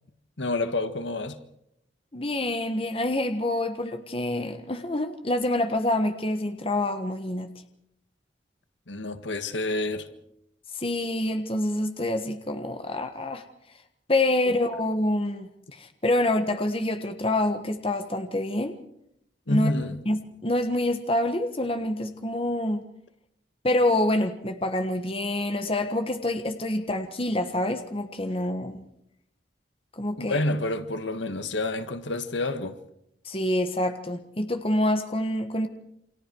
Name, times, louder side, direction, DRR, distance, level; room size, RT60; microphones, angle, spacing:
voice 1, 0.4-1.4 8.9-10.1 14.5-14.6 19.5-20.0 30.2-32.8, left 2 dB, 80° left, 1.7 m, -28 dB
voice 2, 2.1-7.5 10.8-13.4 14.1-18.8 19.5-19.7 20.0-22.8 23.6-28.8 30.0-30.4 33.2-35.7, left 1 dB, 30° left, 1.4 m, -26 dB
28.5 x 25.0 x 4.7 m
head